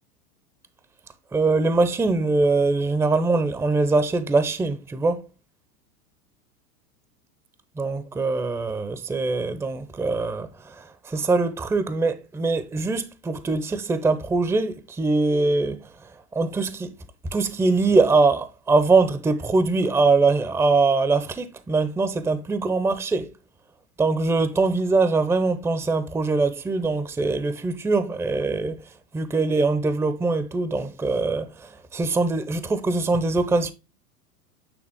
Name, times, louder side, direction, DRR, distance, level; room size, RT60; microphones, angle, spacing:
voice 1, 1.3-5.2 7.8-15.9 16.3-16.9 17.3-23.3 24.0-28.8 29.1-33.7, right 3 dB, 5° right, 0.6 m, -22 dB
8.9 x 3.6 x 3.5 m
hypercardioid pair, 95°, 46 cm